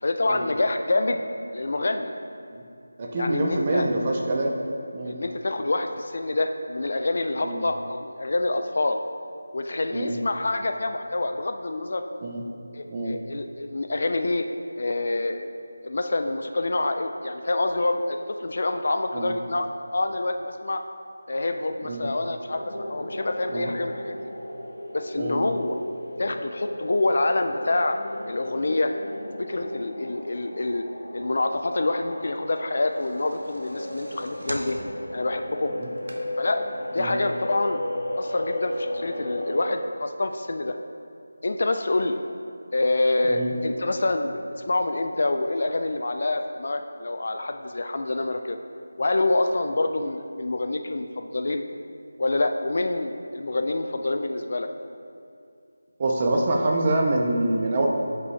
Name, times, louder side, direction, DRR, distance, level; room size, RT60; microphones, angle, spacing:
voice 1, 0.0-1.2 1.5-2.1 3.2-3.9 5.0-9.0 9.5-12.0 12.7-14.5 14.8-15.5 15.8-19.7 19.9-20.8 21.3-24.3 24.9-25.8 26.2-28.0 28.3-28.9 29.4-30.8 31.1-34.8 35.1-35.7 36.4-36.6 36.9-37.8 38.2-40.8 41.4-42.2 42.7-48.6 49.0-51.6 52.2-54.7, left 2 dB, 45° left, 6 dB, 0.3 m, -26 dB
voice 2, 3.0-4.6 4.9-5.2 7.4-7.6 9.9-10.2 12.2-12.4 12.9-13.2 19.1-19.3 21.9-22.1 23.5-23.7 25.2-25.4 37.0-37.1 43.3-43.5 56.0-57.9, right 2 dB, 20° right, 0 dB, 0.5 m, -25 dB
sound 1, 22.5-39.6, left 1 dB, 85° left, 1.0 m, -35 dB
sound 2, 32.7-36.6 37.1-37.2 37.4-37.5, right 1 dB, 80° right, 1.0 m, -41 dB
7.9 x 5.4 x 3.2 m, 2.4 s
figure-of-eight pair, 175°, 0 cm